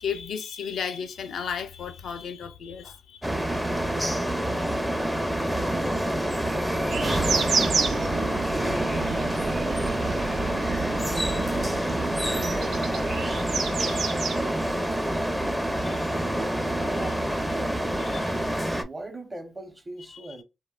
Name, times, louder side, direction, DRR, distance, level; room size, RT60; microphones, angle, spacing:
voice 1, 0.0-3.3 11.3-12.0 13.9-14.1 15.4-15.5 15.9-16.3 16.8-17.1 18.0-18.4, left 7 dB, 75° left, 0.4 m, -35 dB
sound 1, 3.2-18.8, right 1 dB, 5° right, 0.5 m, -27 dB
voice 2, 5.1-7.3 8.1-10.9 12.0-13.4 13.8-15.8 16.4-17.9 18.8-20.4, right 2 dB, 30° right, 0.8 m, -40 dB
sound 2, 6.9-15.4, right 5 dB, 70° right, 0.4 m, -31 dB
2.7 x 2.1 x 2.3 m
supercardioid pair, 55°, 0 cm